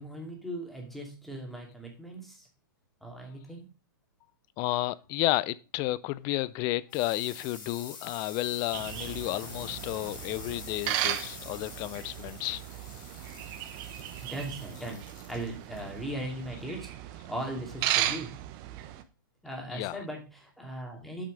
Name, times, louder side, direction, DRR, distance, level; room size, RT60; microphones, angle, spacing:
voice 1, 0.0-2.5 3.0-3.7 14.2-18.4 19.4-21.2, right 1 dB, ahead, 2.5 m, -39 dB
voice 2, 4.6-12.6 19.7-20.0, left 17 dB, 30° left, 0.4 m, -32 dB
sound 1, 6.2-17.5, left 5 dB, 65° left, 3.0 m, -48 dB
sound 2, 8.7-19.0, right 13 dB, 35° right, 0.9 m, -36 dB
8.6 x 5.6 x 5.1 m
hypercardioid pair, 140°, 12 cm